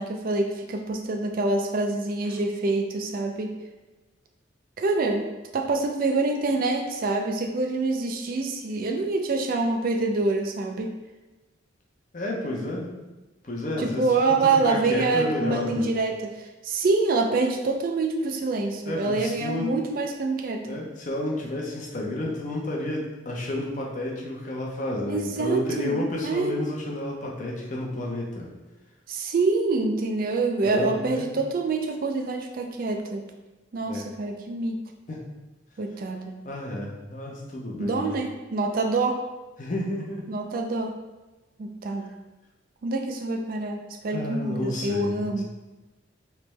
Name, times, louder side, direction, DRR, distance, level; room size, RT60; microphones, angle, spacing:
voice 1, 0.0-3.5 4.8-5.3 5.5-10.9 13.8-20.8 25.1-26.5 29.1-33.3 33.7-34.8 35.8-36.4 37.8-39.2 40.3-41.0 41.6-42.1 42.8-45.4, right 3 dB, 45° right, 3 dB, 0.3 m, -26 dB
voice 2, 12.1-12.9 13.4-14.1 14.4-15.9 18.9-19.7 20.7-28.5 30.6-31.3 33.8-34.1 35.1-35.3 36.4-38.1 39.6-40.3 44.1-45.4, left 1 dB, 40° left, -2 dB, 0.6 m, -31 dB
3.3 x 3.1 x 3.1 m, 1.1 s
head